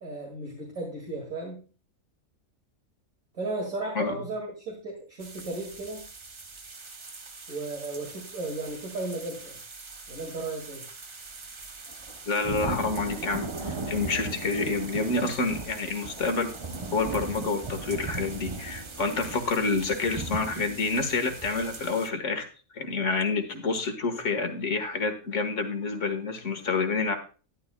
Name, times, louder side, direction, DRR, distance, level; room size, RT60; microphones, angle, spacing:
voice 1, 0.0-1.6 3.3-6.0 7.5-9.6 10.1-10.8, right 2 dB, 65° right, -1 dB, 2.6 m, -35 dB
sound 1, 5.2-22.1, right 3 dB, 30° right, 0.5 m, -38 dB
voice 2, 12.3-13.5 13.9-16.5 16.9-22.5 22.7-27.2, left 4 dB, 55° left, 6 dB, 1.9 m, -28 dB
12.5 x 11.0 x 2.2 m, 0.36 s
omnidirectional pair, 1.5 m